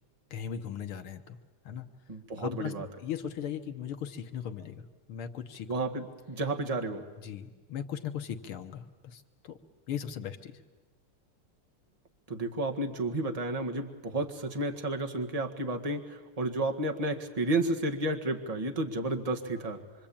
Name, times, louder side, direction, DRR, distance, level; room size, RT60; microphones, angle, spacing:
voice 1, 0.3-1.4 1.7-1.9 2.4-2.7 3.0-5.8 7.2-9.6 9.9-10.6, left 9 dB, 80° left, 8 dB, 2.1 m, -38 dB
voice 2, 2.1-2.9 5.7-7.0 12.3-19.8, right 2 dB, 20° right, 4 dB, 1.7 m, -32 dB
26.0 x 25.5 x 8.8 m, 1.3 s
omnidirectional pair, 2.4 m